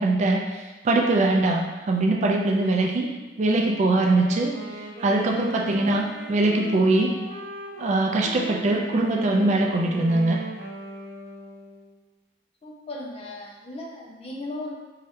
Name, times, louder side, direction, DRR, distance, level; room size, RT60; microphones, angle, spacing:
voice 1, 0.0-3.1 3.4-4.6 5.0-7.1 7.8-10.4, right 2 dB, 40° right, 0 dB, 0.3 m, -22 dB
Wind instrument woodwind instrument, 3.9-12.0, right 1 dB, 60° right, 0.7 m, -39 dB
voice 2, 12.6-14.7, left 2 dB, 35° left, -2 dB, 0.5 m, -36 dB
2.7 x 2.3 x 3.4 m, 1.2 s
head